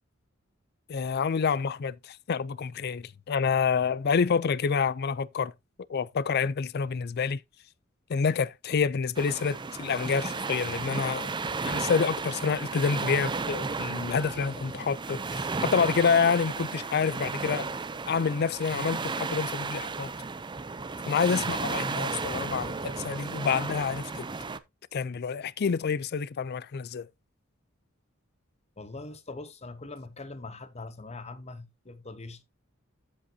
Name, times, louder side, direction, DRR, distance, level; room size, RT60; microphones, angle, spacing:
voice 1, 0.9-5.5 5.9-7.4 8.1-11.4 11.6-17.7 18.1-20.1 21.1-24.3 24.9-27.1, left 6 dB, 50° left, 0.4 m, -28 dB
sound 1, 9.1-24.6, right 4 dB, 25° right, 0.5 m, -34 dB
voice 2, 28.8-32.4, left 3 dB, 30° left, 1.0 m, -42 dB
13.5 x 5.1 x 2.8 m
head